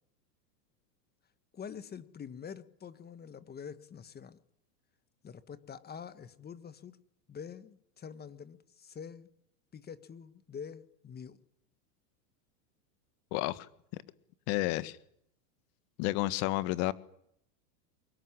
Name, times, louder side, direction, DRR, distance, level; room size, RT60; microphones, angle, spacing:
voice 1, 1.5-4.4 5.2-7.0 7.3-9.3 9.7-11.4, left 7 dB, 20° left, 13 dB, 1.6 m, -46 dB
voice 2, 13.3-14.0 14.5-15.0 16.0-16.9, left 18 dB, 50° left, 14 dB, 1.9 m, -31 dB
24.0 x 21.5 x 10.0 m, 0.71 s
supercardioid pair, 130°, 48 cm